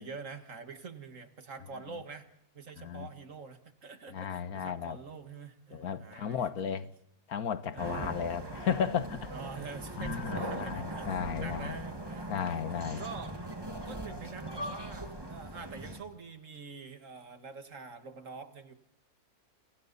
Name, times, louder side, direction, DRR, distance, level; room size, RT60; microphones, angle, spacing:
voice 1, 0.0-2.3 2.5-6.5 6.8-6.9 7.7-8.3 9.3-13.4 13.8-18.7, right 5 dB, 60° right, 2.1 m, -46 dB
voice 2, 2.8-3.1 4.1-5.0 5.7-6.9 7.3-9.3 10.0-11.8 12.3-13.0, left 7 dB, 80° left, 1.6 m, -34 dB
sound 1, 7.8-16.0, right 1 dB, 15° right, 1.8 m, -40 dB
28.5 x 27.0 x 4.1 m
omnidirectional pair, 1.6 m